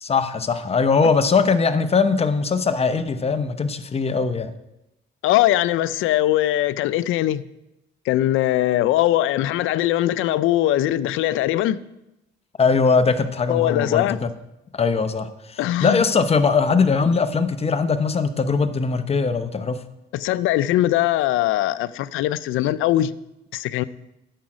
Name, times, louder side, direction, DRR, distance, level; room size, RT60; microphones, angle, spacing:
voice 1, 0.0-4.5 12.6-14.3 14.7-19.8, left 5 dB, 30° left, 0.8 m, -21 dB
voice 2, 5.2-7.4 8.1-11.8 13.5-14.2 15.6-16.0 20.1-23.1 23.5-23.8, left 14 dB, 90° left, 0.4 m, -21 dB
10.5 x 7.3 x 4.9 m
cardioid pair, 90°, 20 cm